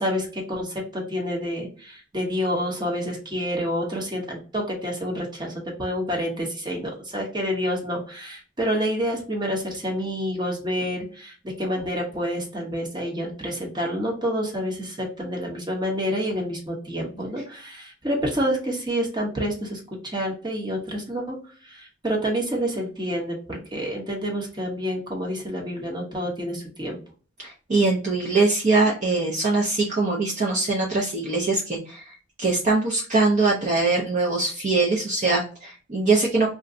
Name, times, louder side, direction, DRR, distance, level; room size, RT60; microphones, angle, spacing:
voice 1, 0.0-5.5 5.8-21.4 21.7-27.0, equal, 25° right, -1 dB, 0.9 m, -28 dB
voice 2, 27.4-36.5, right 3 dB, 40° right, -3 dB, 0.6 m, -22 dB
2.5 x 2.2 x 3.6 m, 0.39 s
head